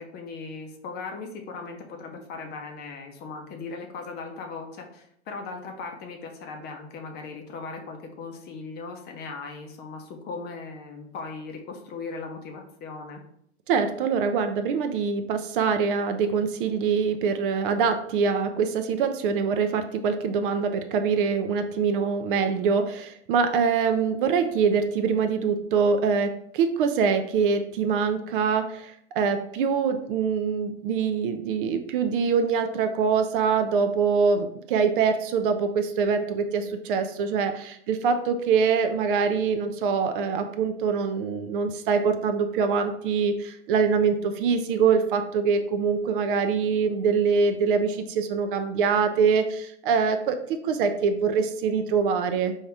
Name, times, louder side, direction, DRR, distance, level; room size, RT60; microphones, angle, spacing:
voice 1, 0.0-13.2, left 4 dB, 30° left, 4 dB, 0.7 m, -38 dB
voice 2, 13.7-52.5, right 5 dB, 50° right, 7 dB, 0.5 m, -24 dB
4.6 x 2.8 x 3.4 m, 0.71 s
hypercardioid pair, 115°, 35 cm